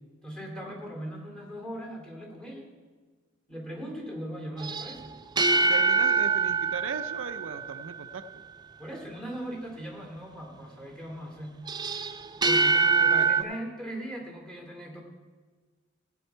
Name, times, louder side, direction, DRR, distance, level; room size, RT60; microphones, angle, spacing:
voice 1, 0.2-2.7 3.5-5.2 8.8-11.6 12.4-15.0, equal, 5° left, 0 dB, 2.3 m, -39 dB
sound 1, 4.6-8.1 11.7-13.4, right 4 dB, 20° right, 0.4 m, -24 dB
voice 2, 5.7-8.5 13.0-13.3, right 5 dB, 75° right, 9 dB, 0.6 m, -38 dB
15.5 x 8.3 x 4.5 m, 1.4 s
head